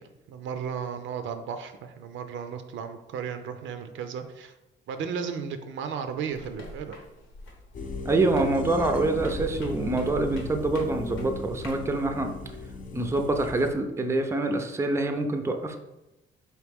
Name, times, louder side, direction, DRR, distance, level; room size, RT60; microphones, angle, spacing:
voice 1, 0.3-4.5 4.9-7.0, right 7 dB, 75° right, 8 dB, 0.5 m, -34 dB
sound 1, 6.3-11.9, left 1 dB, 85° left, 1.0 m, -43 dB
sound 2, 7.7-13.7, left 2 dB, 40° left, 0.7 m, -37 dB
voice 2, 8.0-12.3 12.9-15.8, right 2 dB, 15° right, 5 dB, 0.5 m, -26 dB
4.2 x 3.1 x 3.5 m, 0.97 s
cardioid pair, 90°, 20 cm